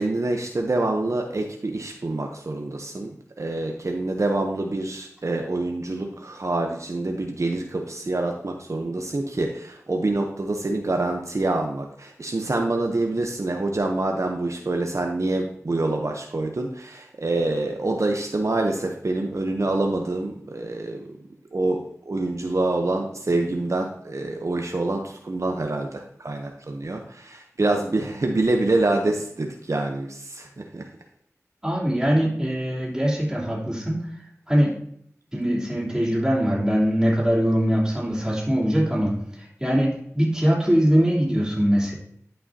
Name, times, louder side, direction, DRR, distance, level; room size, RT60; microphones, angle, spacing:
voice 1, 0.0-3.1 3.4-21.0 21.5-30.9, right 2 dB, 65° right, 2 dB, 0.7 m, -26 dB
voice 2, 31.6-34.1 34.5-34.8 35.3-41.9, equal, 10° right, -6 dB, 3.1 m, -22 dB
11.0 x 5.5 x 2.7 m, 0.69 s
wide cardioid pair, 40°, 6 cm